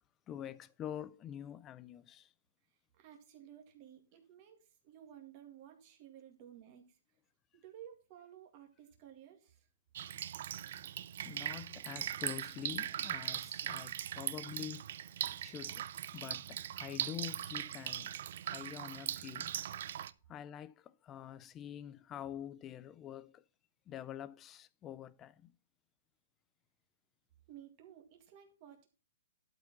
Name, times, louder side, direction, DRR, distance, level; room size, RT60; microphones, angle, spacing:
voice 1, 0.3-2.3 11.2-14.8 15.4-15.9 16.1-18.1 18.4-19.6 20.3-23.4 23.9-25.5, left 10 dB, 15° left, 0.4 m, -46 dB
voice 2, 3.0-7.0 7.5-9.7 27.5-28.9, right 10 dB, 30° right, 2.0 m, -55 dB
Drip, 9.9-20.1, right 10 dB, 50° right, 0.5 m, -40 dB
12.0 x 4.9 x 6.0 m
hypercardioid pair, 170°, 0 cm